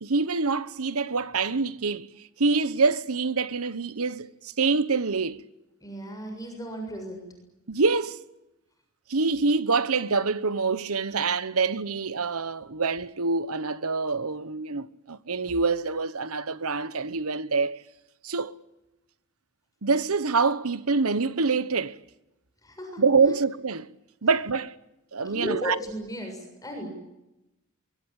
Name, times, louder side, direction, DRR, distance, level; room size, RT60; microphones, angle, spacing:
voice 1, 0.0-2.1 2.4-5.4 7.7-8.2 9.1-17.8 18.2-18.5 19.8-22.0 23.0-23.9 24.2-24.7 25.1-25.8, right 4 dB, 80° right, 1.1 m, -25 dB
voice 2, 5.8-7.3 22.6-23.0 25.2-26.9, equal, 15° left, 7.2 m, -35 dB
24.5 x 23.5 x 8.9 m
head